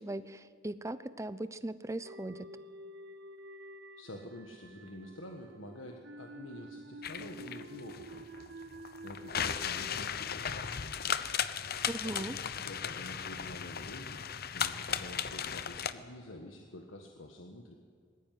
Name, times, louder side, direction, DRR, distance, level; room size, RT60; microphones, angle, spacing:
voice 1, 0.0-2.5 11.8-12.4, right 1 dB, 15° right, 13 dB, 0.6 m, -39 dB
sound 1, 2.0-11.3, right 1 dB, 65° right, 0.9 m, -50 dB
voice 2, 4.0-8.2 9.0-11.1 12.0-14.2 14.5-17.7, left 1 dB, 85° left, 2 dB, 1.6 m, -48 dB
sound 2, 7.0-15.9, left 8 dB, 50° left, 0.8 m, -36 dB
20.0 x 15.0 x 9.3 m, 2.2 s
head